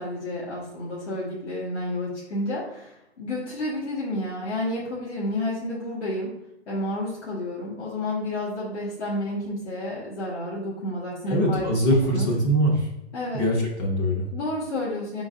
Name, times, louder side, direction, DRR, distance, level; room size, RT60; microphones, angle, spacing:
voice 1, 0.0-6.3 6.7-12.3 13.1-13.4 14.3-15.2, left 1 dB, 80° left, -8 dB, 1.4 m, -30 dB
voice 2, 11.3-12.9 13.3-14.2, equal, 25° left, -2 dB, 0.6 m, -22 dB
4.6 x 3.8 x 2.5 m, 0.86 s
hypercardioid pair, 140°, 34 cm